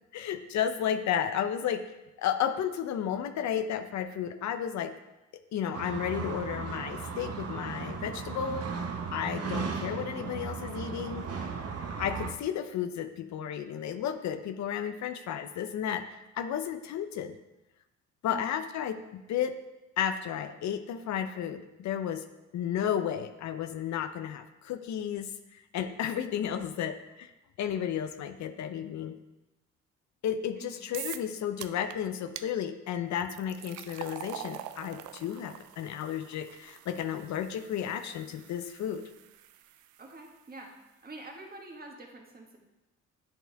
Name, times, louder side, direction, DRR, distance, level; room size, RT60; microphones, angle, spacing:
voice 1, 0.1-4.9 5.5-11.5 12.0-17.4 18.2-19.6 20.0-22.3 22.5-27.3 27.6-29.2 30.2-39.1, left 9 dB, 65° left, 9 dB, 0.6 m, -33 dB
sound 1, 5.7-12.3, right 5 dB, 55° right, 0.8 m, -36 dB
sound 2, 30.9-31.3 31.6-32.0 32.4-32.5 33.2-40.3, right 12 dB, 80° right, 0.5 m, -45 dB
voice 2, 40.0-40.7 41.0-42.6, right 2 dB, 30° right, 1 dB, 1.5 m, -46 dB
10.0 x 4.3 x 3.4 m, 1.0 s
cardioid pair, 90°, 30 cm